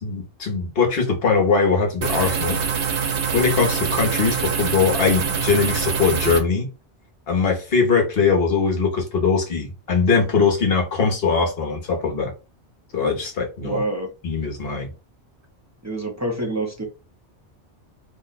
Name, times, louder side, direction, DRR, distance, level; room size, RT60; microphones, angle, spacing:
voice 1, 0.0-2.6 3.3-6.7 7.3-12.3 12.9-13.8 14.2-14.9, left 5 dB, 60° left, 1.2 m, -21 dB
sound 1, 2.0-6.4, right 6 dB, 90° right, 1.0 m, -24 dB
voice 2, 13.6-14.1 15.8-16.8, right 1 dB, 20° right, 0.6 m, -26 dB
2.9 x 2.2 x 3.9 m
omnidirectional pair, 1.1 m